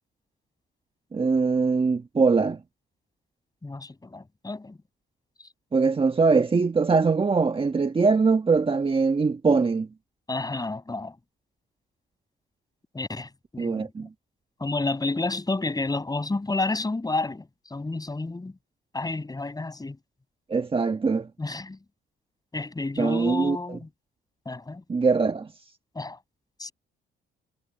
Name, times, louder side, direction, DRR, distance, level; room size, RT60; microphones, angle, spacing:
voice 1, 1.1-2.6 5.7-9.9 13.6-14.1 20.5-21.3 23.0-23.6 24.9-25.5, right 4 dB, 25° right, 1.4 m, -22 dB
voice 2, 3.6-4.8 10.3-11.2 12.9-13.9 14.6-18.5 18.9-20.0 21.4-21.8 22.5-23.9 24.5-24.8 26.0-26.2 26.6-26.7, left 3 dB, 20° left, 6.9 m, -30 dB
cardioid pair, 90°, 20 cm